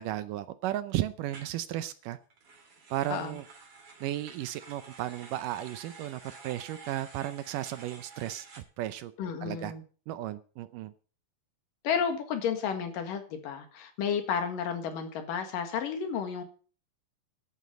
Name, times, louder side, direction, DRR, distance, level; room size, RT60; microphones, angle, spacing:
voice 1, 0.0-2.2 2.9-3.4 4.0-9.1 9.4-9.7 10.1-10.9, right 13 dB, 75° right, 13 dB, 2.1 m, -34 dB
sound 1, 1.3-1.6 2.3-8.6, right 4 dB, 40° right, 3.3 m, -50 dB
voice 2, 9.2-9.8 11.8-16.4, left 7 dB, 70° left, 7 dB, 3.3 m, -32 dB
11.5 x 9.0 x 6.8 m, 0.39 s
omnidirectional pair, 4.1 m